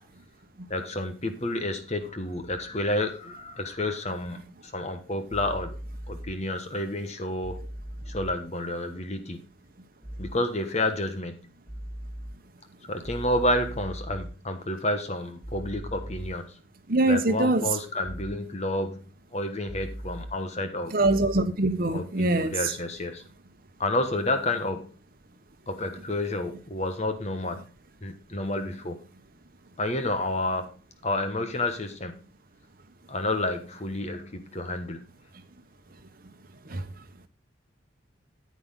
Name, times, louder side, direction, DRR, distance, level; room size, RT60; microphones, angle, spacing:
voice 1, 0.7-5.8 6.1-7.6 8.1-9.5 10.2-11.4 12.9-16.5 17.1-19.0 19.3-21.0 21.9-23.2 23.8-24.9 25.7-27.6 28.0-29.0 29.8-30.7 31.0-32.2 33.1-35.1, left 1 dB, 35° left, 1.2 m, -30 dB
sound 1, 5.3-6.3 7.4-8.3 10.0-10.3 11.7-12.3 13.0-14.3 15.4-16.3 18.0-18.3 19.7-20.3 21.0-21.4, equal, 5° left, 2.8 m, -38 dB
voice 2, 16.9-17.6 20.9-22.6 36.7-36.8, right 2 dB, 45° right, 1.1 m, -23 dB
9.7 x 8.6 x 3.7 m
head